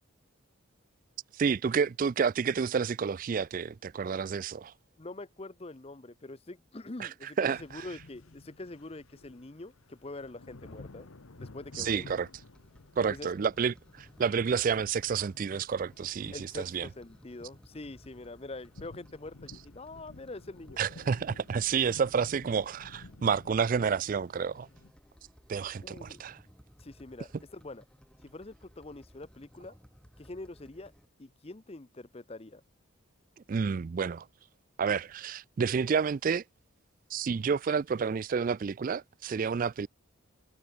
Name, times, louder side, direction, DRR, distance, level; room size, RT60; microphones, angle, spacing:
voice 1, 1.3-4.7 7.0-7.1 7.4-7.9 11.7-12.3 13.0-16.9 20.8-24.7 25.5-26.4 33.5-34.3 34.8-36.4 37.1-39.9, right 6 dB, 40° right, 0.3 m, -30 dB
voice 2, 5.0-11.1 11.4-12.1 13.1-13.3 16.3-20.8 25.8-26.2 26.8-27.8 28.2-29.8 30.2-30.9 31.2-32.6, left 2 dB, 30° left, 0.7 m, -44 dB
sound 1, 7.5-24.9, left 2 dB, 85° left, 1.2 m, -53 dB
sound 2, 12.5-31.1, equal, 5° left, 4.5 m, -59 dB
head